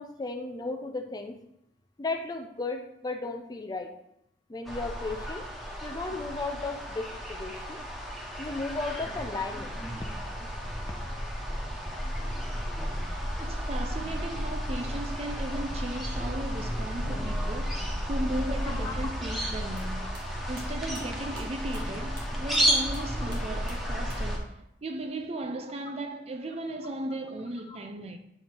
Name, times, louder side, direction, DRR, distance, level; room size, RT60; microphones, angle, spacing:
voice 1, 0.0-1.4 2.0-3.9 4.5-5.5 5.8-7.8 8.4-9.8 18.8-19.0 27.7-27.8, left 3 dB, 25° left, 0.5 m, -35 dB
sound 1, 4.6-24.4, equal, ahead, 0.8 m, -32 dB
voice 2, 13.4-20.1 20.5-28.2, right 1 dB, 35° right, 0.5 m, -36 dB
sound 2, 19.7-22.6 22.9-24.4 24.7-25.4, right 1 dB, 65° right, 2.0 m, -50 dB
7.8 x 2.8 x 4.4 m
head